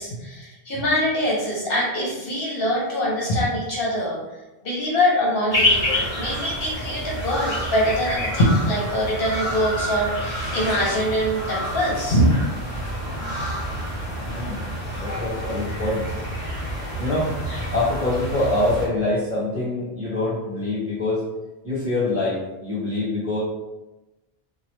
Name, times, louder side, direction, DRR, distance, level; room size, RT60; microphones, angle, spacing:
voice 1, 0.0-4.2 4.6-12.3, equal, 65° left, -5 dB, 0.9 m, -23 dB
sound 1, 5.5-18.9, equal, 45° left, 1.1 m, -28 dB
voice 2, 14.3-14.7 14.9-16.1 17.0-17.3 17.7-21.2 21.6-23.4, left 2 dB, 15° right, -10 dB, 1.3 m, -25 dB
3.1 x 2.2 x 3.1 m, 1.1 s
omnidirectional pair, 1.1 m